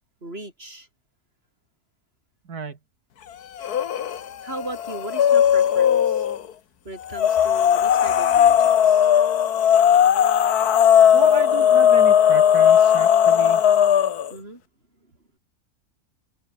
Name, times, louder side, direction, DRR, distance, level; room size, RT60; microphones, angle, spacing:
voice 1, 0.2-0.9 4.4-6.3 6.8-9.1 14.3-14.6 15.0-15.1, right 1 dB, 40° right, 7.6 m, -37 dB
sound 1, 3.6-4.2 4.5-6.4 7.1-14.3, left 9 dB, 80° left, 1.7 m, -17 dB
voice 2, 11.1-13.6, right 5 dB, 80° right, 2.8 m, -32 dB
omnidirectional pair, 1.6 m